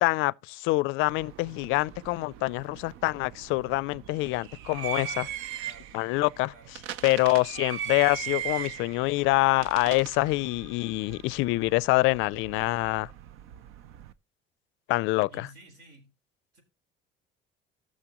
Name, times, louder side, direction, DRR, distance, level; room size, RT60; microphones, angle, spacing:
voice 1, 0.0-5.2 5.9-6.5 7.0-13.1 14.9-15.5, left 21 dB, 80° left, 0.4 m, -26 dB
sound 1, 1.1-14.1, right 10 dB, 85° right, 0.7 m, -40 dB
voice 2, 4.9-5.3 5.6-6.0 6.5-6.7 12.6-12.7 15.3-16.1 16.5-16.6, right 3 dB, 60° right, 4.1 m, -51 dB
15.5 x 6.5 x 3.0 m
cardioid pair, 160°, 20 cm